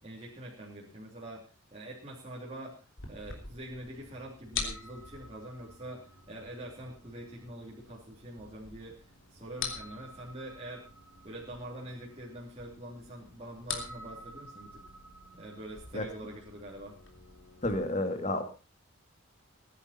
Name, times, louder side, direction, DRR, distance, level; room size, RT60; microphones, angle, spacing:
voice 1, 0.0-8.9 9.3-10.8 11.2-14.8 15.3-16.9, right 1 dB, 30° right, -3 dB, 3.1 m, -45 dB
sound 1, 3.0-17.8, left 5 dB, 60° left, 3.1 m, -45 dB
voice 2, 17.6-18.4, left 1 dB, 35° left, 7 dB, 2.2 m, -30 dB
18.5 x 10.5 x 4.3 m, 0.33 s
head